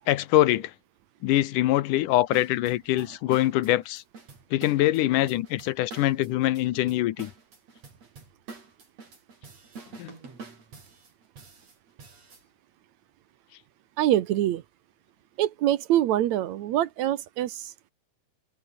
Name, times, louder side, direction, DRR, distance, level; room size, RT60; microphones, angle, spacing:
voice 1, 0.1-0.7 1.2-4.0 4.5-7.3 10.0-10.1, left 15 dB, 80° left, 2.5 m, -24 dB
sound 1, 2.3-12.4, right 4 dB, 55° right, 6.5 m, -47 dB
voice 2, 14.0-14.6 15.4-17.9, right 12 dB, 70° right, 2.1 m, -25 dB
omnidirectional pair, 3.6 m